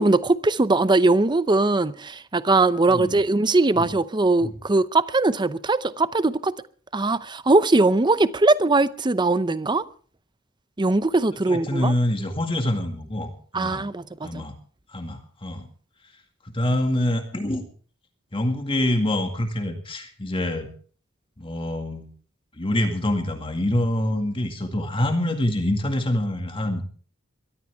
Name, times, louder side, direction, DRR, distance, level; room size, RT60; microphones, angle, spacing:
voice 1, 0.0-6.6 6.9-9.9 10.8-11.9 13.5-14.4, right 2 dB, 20° right, 0.7 m, -20 dB
voice 2, 2.9-3.2 3.8-3.9 4.4-4.5 11.5-13.8 14.2-14.5 14.9-15.7 16.4-17.7 18.3-20.7 21.4-22.1 22.6-26.9, left 1 dB, 25° left, 2.1 m, -25 dB
23.0 x 14.0 x 3.5 m
head